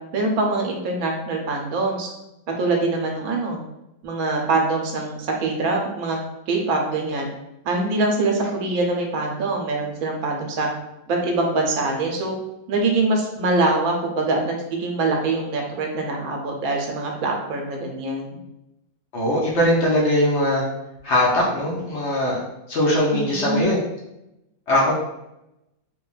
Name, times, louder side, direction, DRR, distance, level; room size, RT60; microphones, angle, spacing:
voice 1, 0.1-2.1 2.6-3.6 4.0-6.2 6.5-7.3 7.6-10.7 11.1-12.3 12.7-18.4 23.1-23.9, right 2 dB, 80° right, 1 dB, 1.0 m, -24 dB
voice 2, 19.1-20.6 21.0-22.4 22.7-23.8 24.7-24.9, left 1 dB, 60° left, -5 dB, 0.9 m, -20 dB
3.1 x 2.2 x 2.3 m, 0.89 s
omnidirectional pair, 1.5 m